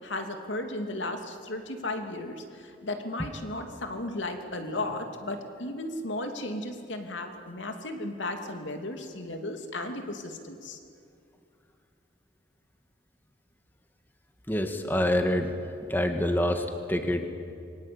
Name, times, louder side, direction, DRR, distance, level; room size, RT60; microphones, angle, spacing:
voice 1, 0.0-10.8, left 2 dB, 75° left, 5 dB, 2.9 m, -35 dB
voice 2, 14.5-15.5 15.8-17.3, left 1 dB, 10° left, 5 dB, 1.8 m, -26 dB
27.5 x 23.5 x 8.8 m, 2.5 s
head